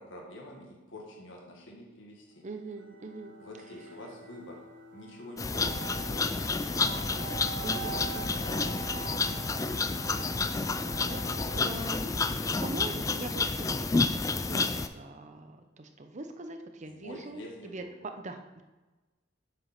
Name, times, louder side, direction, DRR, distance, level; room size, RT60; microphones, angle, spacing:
voice 1, 0.0-2.4 3.4-4.6 4.9-7.9 8.3-8.8 11.2-11.9 16.8-18.1, left 1 dB, 75° left, -1 dB, 1.7 m, -48 dB
voice 2, 2.4-3.4 7.6-8.4 8.8-9.1 10.1-10.4 11.0-11.2 11.5-17.8 18.2-18.6, right 2 dB, 40° right, 6 dB, 0.7 m, -42 dB
sound 1, 2.5-11.9, right 6 dB, 65° right, 1.3 m, -44 dB
sound 2, 5.4-14.9, left 4 dB, 15° left, 0.3 m, -30 dB
7.7 x 5.1 x 5.8 m, 1.2 s
head